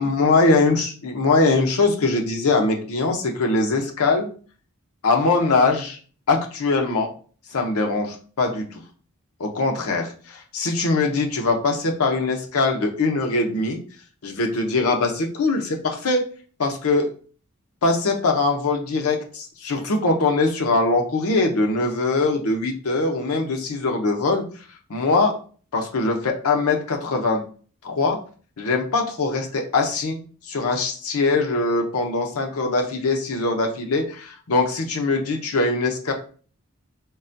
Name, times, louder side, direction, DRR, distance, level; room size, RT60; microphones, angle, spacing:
voice 1, 0.0-4.3 5.0-6.0 6.3-7.1 7.5-8.8 9.4-13.8 14.2-16.2 16.6-17.1 17.8-24.5 24.9-25.4 25.7-27.4 27.8-28.2 28.6-30.2 30.5-36.1, left 3 dB, 80° left, 2 dB, 0.7 m, -22 dB
3.8 x 2.1 x 2.6 m, 0.40 s
head